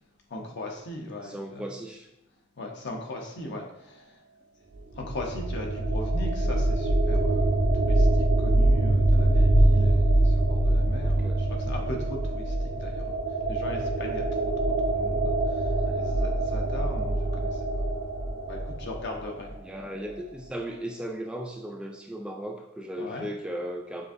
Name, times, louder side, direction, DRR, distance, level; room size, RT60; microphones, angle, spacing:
voice 1, 0.3-1.7 2.6-4.2 4.9-17.6 18.5-19.5 23.0-23.3, left 1 dB, 60° left, 1 dB, 0.8 m, -39 dB
voice 2, 1.2-2.1 11.0-11.4 15.8-16.0 19.6-24.1, right 1 dB, 5° right, 1 dB, 0.3 m, -36 dB
sound 1, 4.7-19.6, right 1 dB, 80° right, 0.7 m, -24 dB
6.6 x 2.6 x 2.5 m, 0.89 s
head